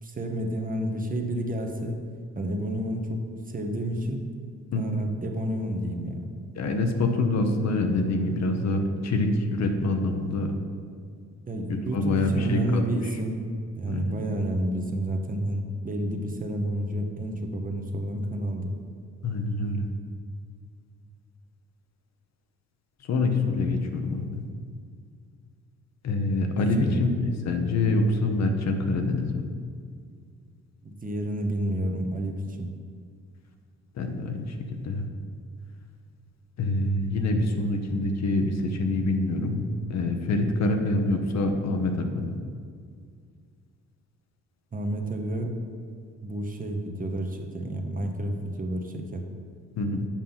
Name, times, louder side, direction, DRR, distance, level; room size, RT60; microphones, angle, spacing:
voice 1, 0.0-2.0 2.4-4.2 4.7-6.3 11.5-18.7 26.6-27.1 30.8-32.7 44.7-45.6 46.2-49.2, right 1 dB, 30° right, 3 dB, 1.0 m, -30 dB
voice 2, 6.6-10.5 11.7-12.9 13.9-14.1 19.2-19.9 23.1-24.4 26.0-29.4 34.0-35.1 36.6-39.6 39.9-42.3 49.8-50.1, left 2 dB, 60° left, 5 dB, 1.0 m, -26 dB
7.4 x 5.5 x 5.7 m, 2.1 s
cardioid pair, 90°, 30 cm